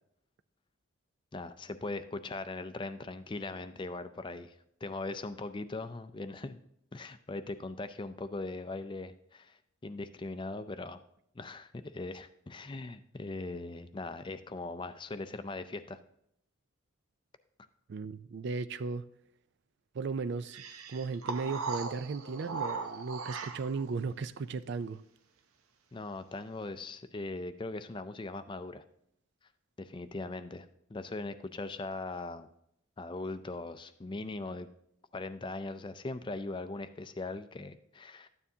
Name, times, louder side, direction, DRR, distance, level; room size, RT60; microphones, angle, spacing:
voice 1, 1.3-4.5 4.8-6.6 6.9-11.0 11.4-16.0 25.9-28.8 29.8-32.5 33.0-34.7 35.1-38.3, left 2 dB, 25° left, 0.4 m, -40 dB
voice 2, 17.9-19.0 19.9-20.6 20.9-25.0, right 4 dB, 55° right, 0.4 m, -36 dB
sound 1, 20.5-23.9, right 4 dB, 85° right, 0.8 m, -38 dB
12.5 x 9.3 x 2.8 m
head